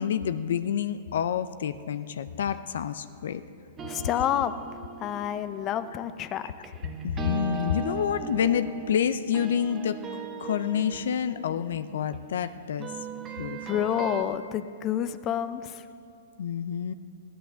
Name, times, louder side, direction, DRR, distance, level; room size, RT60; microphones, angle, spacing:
voice 1, 0.0-3.4 7.0-10.0 10.4-12.9 13.4-13.8 16.4-16.9, left 8 dB, 70° left, 12 dB, 0.6 m, -28 dB
sound 1, 3.8-14.2, right 4 dB, 25° right, 1.1 m, -39 dB
voice 2, 3.9-4.5 5.0-6.7 13.7-15.8, left 10 dB, 30° left, 11 dB, 0.6 m, -29 dB
15.0 x 11.0 x 6.9 m, 2.4 s
hypercardioid pair, 125°, 0 cm